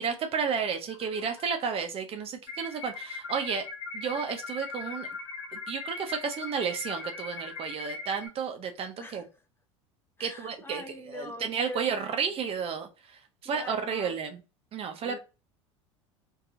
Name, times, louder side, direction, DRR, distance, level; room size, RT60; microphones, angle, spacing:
voice 1, 0.0-3.6 3.9-5.1 5.5-9.2 10.2-10.8 11.1-14.4 14.7-15.2, right 6 dB, 35° right, 0.5 m, -32 dB
sound 1, 0.9-1.6 2.9-3.6 4.9-5.6 6.9-7.6, left 6 dB, 85° left, 0.9 m, -53 dB
sound 2, 2.5-8.3, left 3 dB, 50° left, 1.0 m, -39 dB
voice 2, 9.0-9.4 10.2-12.4 13.4-14.2 15.0-15.2, left 1 dB, 15° left, 0.6 m, -44 dB
2.8 x 2.2 x 2.5 m
hypercardioid pair, 75°, 17 cm